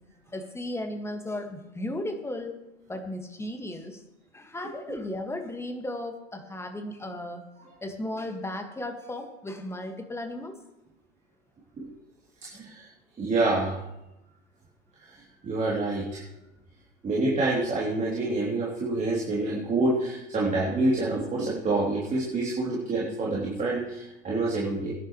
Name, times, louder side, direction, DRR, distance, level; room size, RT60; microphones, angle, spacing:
voice 1, 0.3-2.6 2.9-4.0 4.3-7.4 7.8-10.5, left 1 dB, 5° left, 4 dB, 2.0 m, -35 dB
voice 2, 12.5-12.9 13.2-13.8 15.0-15.2 15.4-16.2 17.0-24.9, right 2 dB, 20° right, -6 dB, 3.3 m, -27 dB
23.0 x 10.0 x 3.3 m, 0.92 s
figure-of-eight pair, 90°, 36 cm